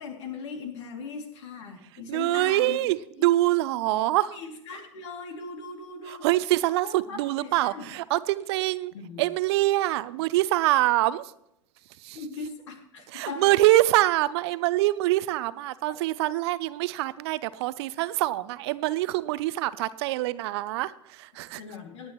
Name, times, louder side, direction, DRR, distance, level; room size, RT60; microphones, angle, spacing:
voice 1, 0.0-2.8 3.2-3.3 4.3-7.9 8.9-9.2 12.1-13.5 21.6-22.1, left 4 dB, 65° left, 2.7 m, -39 dB
voice 2, 2.1-4.4 6.1-8.9 9.2-11.3 12.0-12.2 13.1-21.6, right 17 dB, 60° right, 0.7 m, -25 dB
18.0 x 10.5 x 3.1 m
hypercardioid pair, 90°, 16 cm